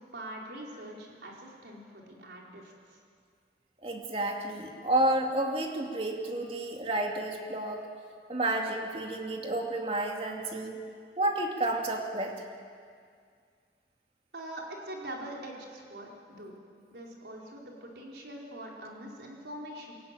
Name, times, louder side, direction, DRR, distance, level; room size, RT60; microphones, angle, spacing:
voice 1, 0.1-3.0 14.3-16.1 16.4-16.5 16.9-19.9, right 1 dB, 75° right, -2 dB, 4.5 m, -43 dB
voice 2, 3.8-7.9 8.3-10.8 11.2-12.3, right 1 dB, 35° right, 1 dB, 2.4 m, -30 dB
22.5 x 17.5 x 9.1 m, 2.1 s
head